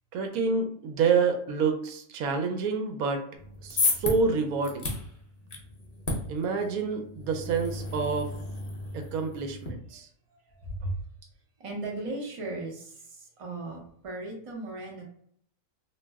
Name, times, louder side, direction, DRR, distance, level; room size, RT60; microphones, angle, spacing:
voice 1, 0.1-3.2 3.6-4.9 6.3-8.3 8.9-10.1, right 5 dB, 85° right, 5 dB, 1.0 m, -28 dB
sound 1, 3.4-9.7, left 3 dB, 50° left, 0.4 m, -34 dB
voice 2, 10.5-10.9 11.6-15.0, right 2 dB, 35° right, -1 dB, 0.5 m, -36 dB
2.5 x 2.0 x 3.3 m, 0.65 s
omnidirectional pair, 1.5 m